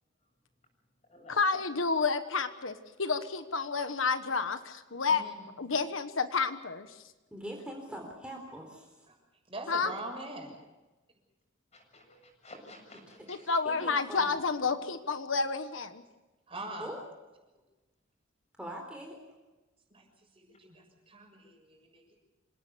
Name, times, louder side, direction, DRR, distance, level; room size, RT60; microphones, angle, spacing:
voice 1, 1.3-2.7 3.0-5.2 5.6-6.9 9.7-9.9 13.3-16.0, left 4 dB, 80° left, 9 dB, 1.2 m, -30 dB
voice 2, 7.3-8.9 13.6-14.3 16.8-17.0 18.6-19.2, equal, 5° right, 1 dB, 3.8 m, -42 dB
voice 3, 9.5-10.5 16.5-16.9 19.9-20.0 20.4-22.2, right 2 dB, 30° right, 2 dB, 6.5 m, -42 dB
voice 4, 11.7-13.4, left 1 dB, 35° left, 3 dB, 7.6 m, -52 dB
27.5 x 18.0 x 6.9 m, 1.1 s
head